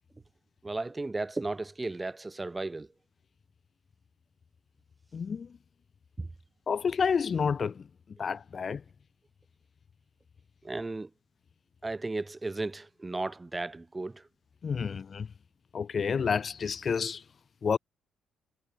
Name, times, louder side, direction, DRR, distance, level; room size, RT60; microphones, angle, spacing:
voice 1, 0.6-2.9 6.2-6.3 10.6-11.1 11.8-14.2 14.9-15.0, right 2 dB, 20° right, 4.2 m, -35 dB
voice 2, 5.1-5.5 6.7-7.8 8.2-8.8 14.6-15.3 15.7-17.2 17.6-17.8, left 6 dB, 45° left, 0.5 m, -29 dB
cardioid pair, 90°, 0 cm